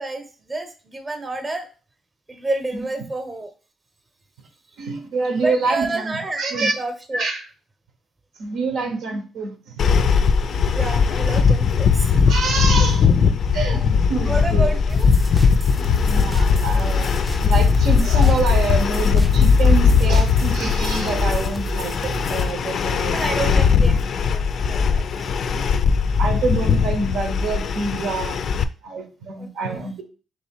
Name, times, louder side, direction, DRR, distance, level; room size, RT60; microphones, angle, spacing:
voice 1, 0.0-1.7 2.3-3.5 5.4-7.3 10.7-12.3 13.7-15.1 23.1-24.0 24.3-25.3 29.4-29.9, right 2 dB, 25° right, 6 dB, 0.8 m, -29 dB
voice 2, 4.8-6.7 7.1-7.4 8.4-9.9 10.5-10.9 12.1-13.1 13.5-14.8 15.7-23.2 26.2-28.4 28.8-30.0, right 4 dB, 80° right, 4 dB, 1.0 m, -26 dB
sound 1, 9.8-28.6, left 6 dB, 60° left, 0.4 m, -19 dB
sound 2, 14.9-22.5, right 1 dB, 5° right, 0.4 m, -31 dB
3.5 x 3.1 x 4.5 m, 0.36 s
cardioid pair, 90°, 0 cm